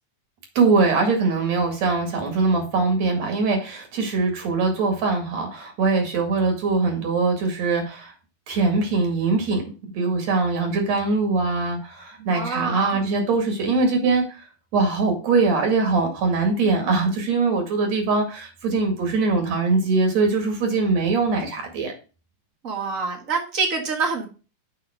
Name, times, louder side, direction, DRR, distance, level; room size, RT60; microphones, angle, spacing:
voice 1, 0.6-8.1 8.5-21.9, right 3 dB, 70° right, 4 dB, 3.2 m, -22 dB
voice 2, 12.2-13.0 22.6-24.3, right 4 dB, 35° right, 2 dB, 1.5 m, -26 dB
6.8 x 5.5 x 5.0 m, 0.33 s
omnidirectional pair, 3.3 m